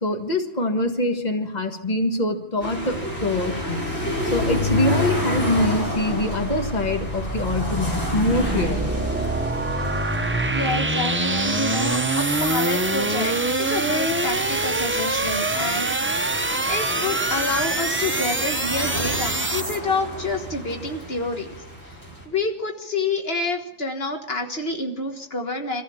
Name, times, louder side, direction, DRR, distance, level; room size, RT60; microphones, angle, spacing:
voice 1, 0.0-3.8 4.3-9.0, left 1 dB, 40° left, 5 dB, 1.9 m, -24 dB
sound 1, 2.6-22.3, left 2 dB, 85° left, 6.1 m, -31 dB
sound 2, 5.6-19.8, right 2 dB, 15° right, 0.6 m, -25 dB
voice 2, 10.5-16.2 16.7-21.5 21.9-22.0 22.3-25.8, left 3 dB, 70° left, 4 dB, 1.8 m, -28 dB
24.5 x 15.0 x 7.3 m, 0.76 s
omnidirectional pair, 1.1 m